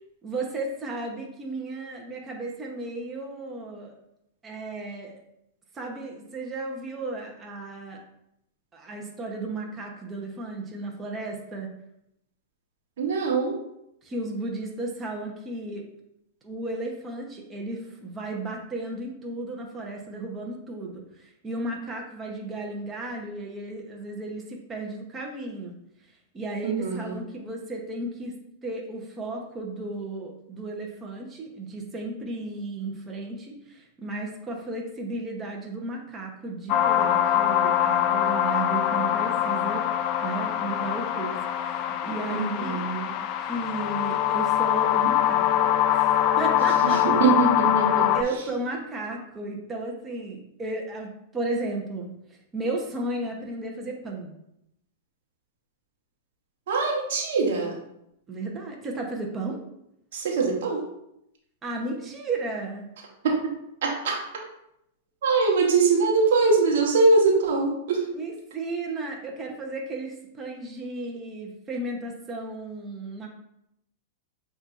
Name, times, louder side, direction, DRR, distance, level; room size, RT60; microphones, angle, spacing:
voice 1, 0.2-3.9 4.4-5.1 5.7-8.0 8.7-11.7 14.0-15.9 16.4-25.8 26.0-28.4 28.6-39.9 40.2-42.8 43.4-46.1 46.4-47.2 48.1-54.3 58.3-59.6 61.6-62.9 68.1-73.3, right 2 dB, 20° right, 0 dB, 0.9 m, -34 dB
voice 2, 13.0-13.6 26.6-27.2 42.3-43.1 46.8-48.1 56.7-57.7 60.1-60.9 63.2-63.5 63.8-64.2 65.2-68.1, right 4 dB, 70° right, 0 dB, 1.2 m, -23 dB
sound 1, 36.7-48.2, left 11 dB, 45° left, 0.3 m, -23 dB
7.9 x 2.7 x 2.5 m, 0.80 s
hypercardioid pair, 115°, 0 cm